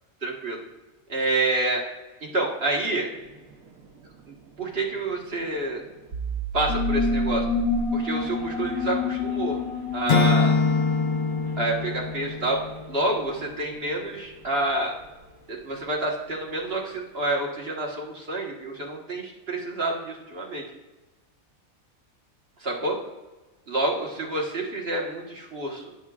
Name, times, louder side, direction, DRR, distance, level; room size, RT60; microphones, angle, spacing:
voice 1, 0.2-0.6 1.1-1.8 2.2-3.1 4.6-5.8 6.5-7.4 7.9-9.6 9.9-10.5 11.6-12.6 12.9-14.9 15.5-20.7 22.6-23.0 23.7-25.8, right 2 dB, 45° right, -1 dB, 1.6 m, -28 dB
sound 1, 3.1-15.9, right 4 dB, 80° right, 1.2 m, -38 dB
sound 2, 6.7-11.9, left 4 dB, 90° left, 1.3 m, -28 dB
Acoustic guitar / Strum, 10.1-13.2, left 4 dB, 55° left, 0.5 m, -24 dB
15.0 x 7.2 x 2.4 m, 1.2 s
omnidirectional pair, 1.5 m